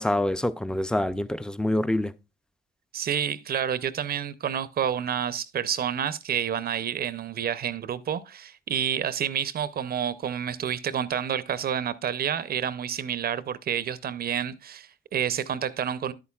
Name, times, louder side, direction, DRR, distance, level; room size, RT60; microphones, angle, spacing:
voice 1, 0.0-2.1, left 1 dB, 5° left, 0.4 m, -26 dB
voice 2, 2.9-16.1, right 8 dB, 50° right, 0.6 m, -29 dB
10.5 x 8.3 x 2.3 m
cardioid pair, 90°, 20 cm